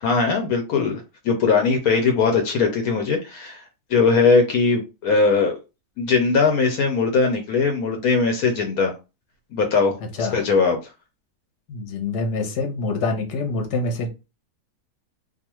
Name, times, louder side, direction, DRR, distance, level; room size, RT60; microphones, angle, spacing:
voice 1, 0.0-3.6 3.9-5.6 6.0-8.9 9.5-10.8, left 4 dB, 75° left, 1.1 m, -20 dB
voice 2, 11.7-14.1, left 3 dB, 55° left, 1.0 m, -25 dB
2.5 x 2.4 x 2.9 m
omnidirectional pair, 1.6 m